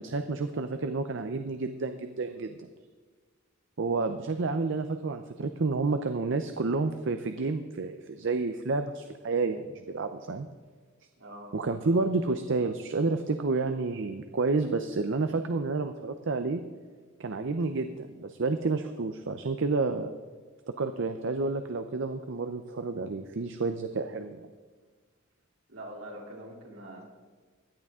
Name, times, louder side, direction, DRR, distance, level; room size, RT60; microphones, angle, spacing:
voice 1, 0.0-2.7 3.8-10.5 11.5-16.6 17.2-20.1 20.7-24.4, right 3 dB, 65° right, 8 dB, 0.6 m, -30 dB
voice 2, 11.2-11.5 25.7-27.0, right 1 dB, 80° right, -1 dB, 3.1 m, -44 dB
16.5 x 11.0 x 3.7 m, 1.4 s
head